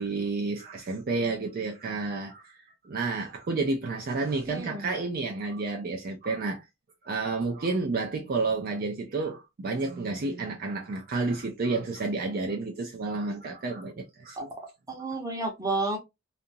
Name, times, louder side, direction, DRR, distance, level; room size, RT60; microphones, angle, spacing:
voice 1, 0.0-6.6 7.0-14.5, right 3 dB, 45° right, 0.4 m, -30 dB
voice 2, 4.5-4.9 14.4-14.5 14.9-16.0, right 2 dB, 15° right, 0.8 m, -31 dB
2.8 x 2.5 x 2.5 m
head